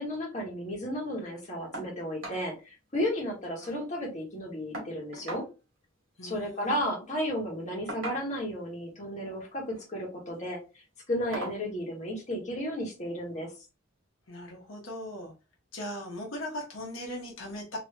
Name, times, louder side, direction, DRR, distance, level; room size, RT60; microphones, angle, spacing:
voice 1, 0.0-5.4 6.2-10.6 11.1-13.5, equal, 35° left, -2 dB, 1.4 m, -33 dB
sound 1, 1.7-1.9 2.2-2.4 2.8-2.9 3.2-3.9 4.7-5.5 6.7-6.9 7.9-8.5 9.6-9.9 10.4-10.5 11.3-11.6 12.9-13.0 13.5-13.6, right 1 dB, 70° right, 1.7 m, -40 dB
voice 2, 6.2-6.8 14.3-15.3 15.7-17.8, left 1 dB, 80° left, -1 dB, 1.0 m, -39 dB
3.3 x 2.9 x 2.9 m, 0.29 s
head